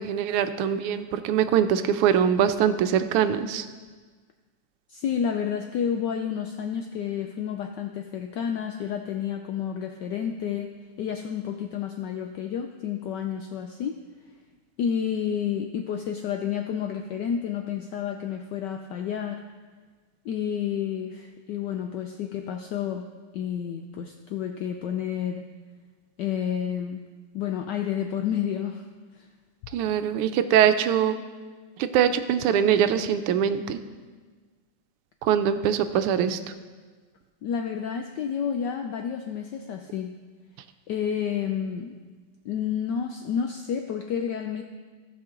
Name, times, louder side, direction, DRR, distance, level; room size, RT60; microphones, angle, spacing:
voice 1, 0.0-3.7 29.7-31.2 31.8-33.8 35.2-36.4, right 9 dB, 90° right, 10 dB, 1.6 m, -23 dB
voice 2, 4.9-14.0 14.8-19.4 20.2-23.1 23.3-25.5 26.2-27.0 27.3-28.9 29.1-29.3 37.4-40.1 40.9-41.9 42.4-44.6, left 8 dB, 80° left, 5 dB, 0.9 m, -30 dB
16.0 x 5.7 x 3.7 m, 1.4 s
omnidirectional pair, 2.4 m